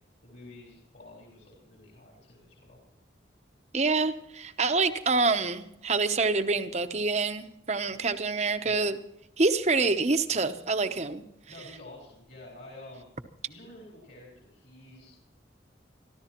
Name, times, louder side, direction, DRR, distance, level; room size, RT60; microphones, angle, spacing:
voice 1, 0.2-2.8 8.6-8.8 11.5-13.1 13.5-15.1, left 2 dB, 55° left, 4.2 m, -49 dB
voice 2, 3.7-9.0 9.4-11.2, right 3 dB, 35° right, 0.8 m, -26 dB
25.0 x 13.5 x 3.0 m
head